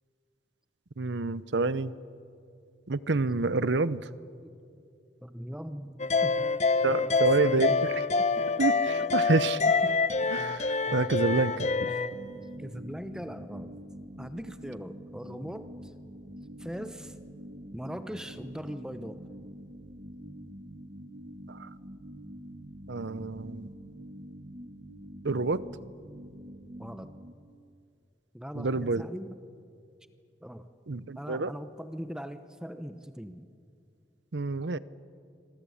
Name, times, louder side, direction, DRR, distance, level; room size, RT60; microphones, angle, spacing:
voice 1, 1.0-1.9 2.9-4.0 6.8-8.0 8.6-9.6 10.3-11.9 21.5-21.7 22.9-23.7 25.2-25.6 28.5-29.0 30.9-31.5 34.3-34.8, right 3 dB, 80° right, 16 dB, 0.8 m, -28 dB
voice 2, 5.2-6.5 7.0-7.9 9.0-9.3 9.8-10.0 10.2-10.3 12.6-13.7 14.2-15.9 16.6-17.2 17.7-19.2 26.8-27.1 28.3-29.4 30.4-30.7 31.2-33.5, equal, 5° right, 10 dB, 0.8 m, -40 dB
sound 1, 6.0-12.1, left 4 dB, 40° left, 0.8 m, -26 dB
sound 2, 12.1-27.3, equal, 40° right, 1.7 m, -45 dB
26.5 x 23.0 x 8.6 m, 2.4 s
head